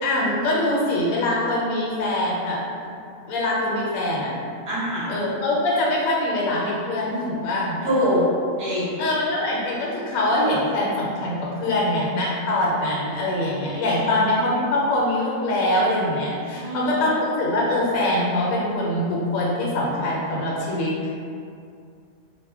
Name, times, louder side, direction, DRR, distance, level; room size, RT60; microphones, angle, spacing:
voice 1, 0.0-2.6 3.3-4.3 5.1-7.8 9.0-21.1, left 1 dB, 75° left, -5 dB, 1.0 m, -23 dB
voice 2, 4.7-5.2 7.8-8.2 8.6-9.0 13.9-14.1 16.5-17.1, equal, 55° right, -10 dB, 1.2 m, -25 dB
2.6 x 2.1 x 3.4 m, 2.4 s
omnidirectional pair, 1.5 m